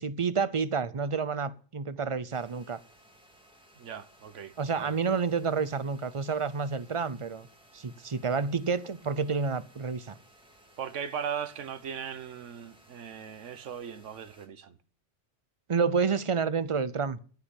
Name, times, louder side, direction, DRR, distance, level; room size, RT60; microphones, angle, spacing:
voice 1, 0.0-2.8 4.6-7.5 7.7-10.1 15.7-17.2, right 5 dB, 35° right, 0.6 m, -29 dB
sound 1, 2.3-14.5, right 1 dB, 5° right, 2.3 m, -59 dB
voice 2, 3.8-4.9 10.8-14.7, right 8 dB, 90° right, 1.3 m, -38 dB
14.5 x 6.0 x 8.3 m
omnidirectional pair, 1.2 m